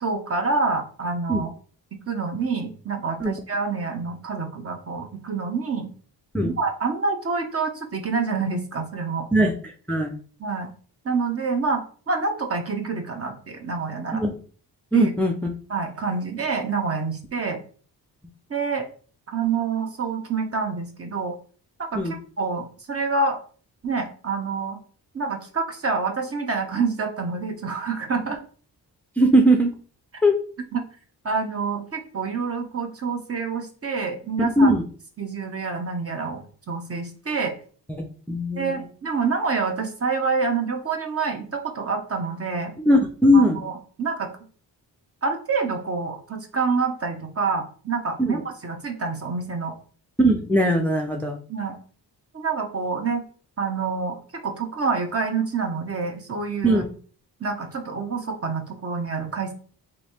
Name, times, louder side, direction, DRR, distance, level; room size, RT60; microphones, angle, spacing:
voice 1, 0.0-1.5 1.9-5.9 6.6-9.3 10.4-10.7 11.0-14.2 14.9-15.1 15.7-17.6 18.5-18.9 19.3-21.3 21.8-23.4 23.8-24.8 25.1-28.4 30.7-30.8 31.2-34.8 35.2-37.5 38.6-42.7 43.3-44.3 45.2-49.8 51.5-51.8 52.3-53.2 53.6-56.8 57.4-59.5, right 4 dB, 35° right, 4 dB, 0.9 m, -27 dB
voice 2, 14.9-15.5 21.9-22.1 29.2-29.7 30.2-30.3 34.4-34.8 37.9-38.8 42.8-43.6 48.2-48.4 50.2-51.4 56.6-56.8, equal, 5° left, 2 dB, 0.5 m, -19 dB
3.1 x 2.7 x 4.2 m, 0.43 s
cardioid pair, 75°, 41 cm